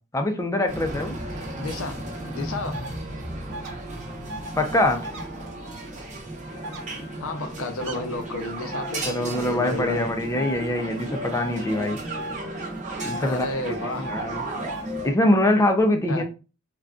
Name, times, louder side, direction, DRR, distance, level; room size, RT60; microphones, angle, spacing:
voice 1, 0.1-1.2 4.6-5.0 9.0-12.0 13.0-14.5 15.0-16.2, left 1 dB, 15° left, 0.4 m, -23 dB
sound 1, 0.7-15.1, right 1 dB, 35° right, 0.8 m, -34 dB
voice 2, 1.5-2.0 2.3-2.8 7.2-10.1 13.2-14.1 16.1-16.2, left 2 dB, 70° left, 0.6 m, -32 dB
sound 2, 2.7-2.9 3.5-3.7 4.3-4.5 5.0-5.2 6.6-6.8 7.8-8.0 8.7-8.9 10.3-10.6 11.3-11.5 12.1-12.4 13.0-13.2 14.0-14.2 14.7-14.8, right 1 dB, 60° right, 0.5 m, -35 dB
3.7 x 2.2 x 2.3 m
head